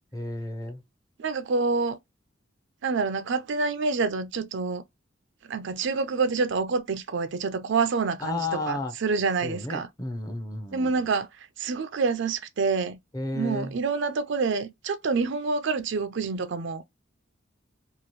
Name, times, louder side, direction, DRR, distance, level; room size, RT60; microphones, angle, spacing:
voice 1, 0.1-0.8 8.2-8.9 9.4-10.9 13.1-13.8, left 2 dB, 20° left, 0.6 m, -32 dB
voice 2, 1.2-2.0 2.8-4.8 5.5-9.9 10.7-11.3 11.6-13.0 13.3-16.9, right 4 dB, 65° right, 0.5 m, -27 dB
2.9 x 2.3 x 2.9 m
head